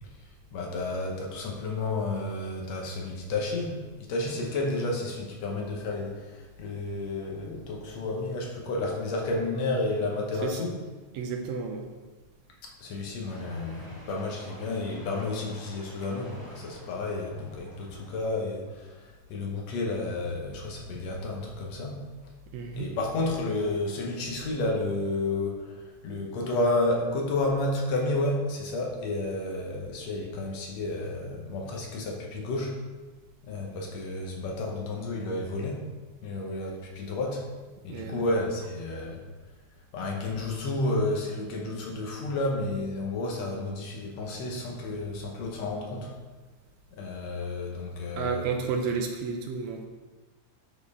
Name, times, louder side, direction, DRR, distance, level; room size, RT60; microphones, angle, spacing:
voice 1, 0.5-10.8 12.6-22.0 22.7-32.8 33.4-35.9 36.2-37.4 37.8-39.2 39.9-46.1 46.9-48.4, left 2 dB, 70° left, 0 dB, 2.0 m, -31 dB
voice 2, 11.1-11.9 22.5-22.9 37.9-38.2 48.2-49.9, right 5 dB, 75° right, 3 dB, 1.8 m, -31 dB
sound 1, 13.3-18.3, equal, 20° right, 0.5 m, -50 dB
sound 2, 17.4-18.1 18.8-18.9 19.2-19.3 20.2-21.9 22.9-23.0 23.4-23.9 24.3-24.7 26.2-26.3 27.3-27.7 28.0-28.2, right 1 dB, 85° left, 2.1 m, -50 dB
12.0 x 4.4 x 3.5 m, 1.3 s
omnidirectional pair, 3.4 m